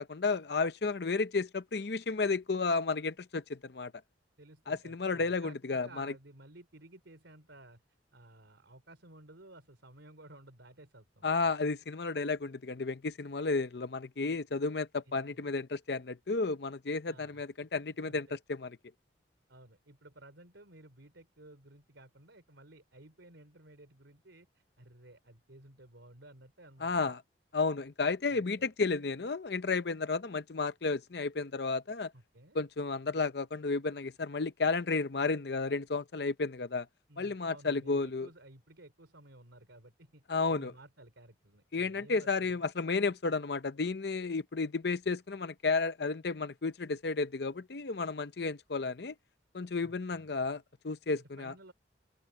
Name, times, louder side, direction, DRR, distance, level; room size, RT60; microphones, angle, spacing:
voice 1, 0.0-3.9 4.7-6.1 11.2-18.8 26.8-27.2 27.5-32.1 32.5-36.9 37.2-38.3 40.3-40.7 41.7-49.1 49.5-51.5, left 4 dB, 60° left, 0.7 m, -32 dB
voice 2, 4.4-7.8 8.1-11.5 15.0-15.4 17.1-17.7 18.0-18.4 19.5-27.1 28.3-28.7 32.1-32.6 37.1-40.2 40.5-42.6 49.8-50.3 51.2-51.7, right 1 dB, 85° right, 3.7 m, -55 dB
head